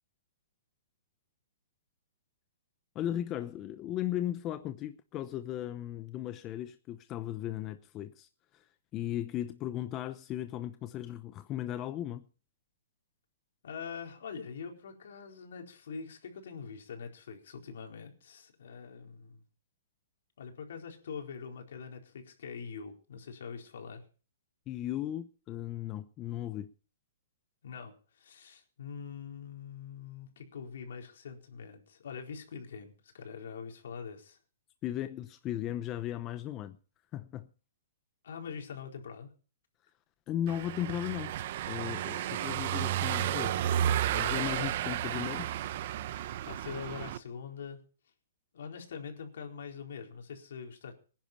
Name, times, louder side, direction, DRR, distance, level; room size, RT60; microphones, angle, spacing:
voice 1, 2.9-8.6 8.9-12.2 24.7-26.7 34.8-36.8 37.1-37.5 40.3-41.3 41.7-43.6 44.1-45.5, left 12 dB, 25° left, 0.8 m, -36 dB
voice 2, 13.6-19.4 20.4-24.0 27.6-34.4 38.2-39.3 42.2-42.9 44.6-44.8 46.4-47.8 48.5-50.9, left 6 dB, 70° left, 4.3 m, -44 dB
Car passing by / Engine, 40.5-47.2, right 11 dB, 50° right, 0.9 m, -32 dB
19.5 x 10.5 x 4.5 m
hypercardioid pair, 155°, 0 cm